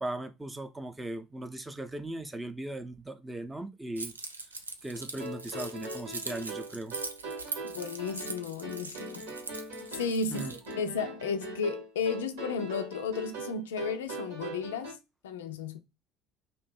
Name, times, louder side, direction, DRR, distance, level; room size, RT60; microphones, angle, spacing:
voice 1, 0.0-4.1 4.8-7.0 10.3-10.6, right 1 dB, 15° right, 0.6 m, -38 dB
Keys jangling, 4.0-10.7, right 3 dB, 85° right, 0.4 m, -41 dB
sound 1, 4.9-14.9, right 1 dB, 70° right, 1.2 m, -41 dB
voice 2, 7.6-9.3 9.9-10.5 10.8-15.0 15.2-15.8, left 5 dB, 70° left, 0.3 m, -33 dB
3.0 x 2.7 x 4.2 m
figure-of-eight pair, 60°, 0 cm